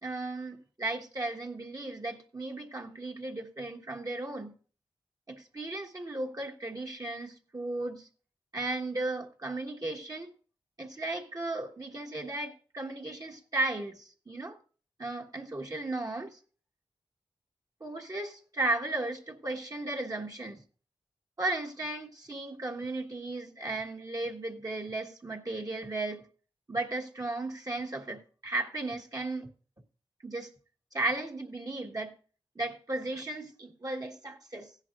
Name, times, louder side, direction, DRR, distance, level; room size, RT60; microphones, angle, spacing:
voice 1, 0.0-4.5 5.3-8.1 8.5-10.3 10.8-14.6 15.0-16.4 17.8-20.6 21.4-26.2 26.7-29.5 30.2-30.5 30.9-32.1 32.5-34.7, right 2 dB, 35° right, 1.4 m, -35 dB
15.5 x 10.5 x 2.5 m
wide cardioid pair, 70°, 10 cm